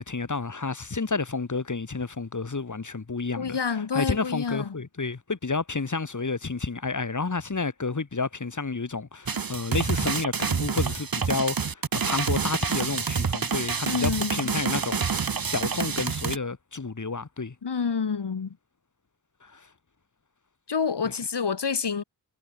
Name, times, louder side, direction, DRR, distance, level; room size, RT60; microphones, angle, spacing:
voice 1, 0.0-17.5 19.4-19.7, left 4 dB, 45° left, 6.9 m, -30 dB
voice 2, 3.4-4.7 13.9-14.5 17.6-18.6 20.7-22.0, left 6 dB, 70° left, 7.0 m, -28 dB
sound 1, 9.3-16.4, right 5 dB, 55° right, 2.4 m, -28 dB
wide cardioid pair, 90°, 42 cm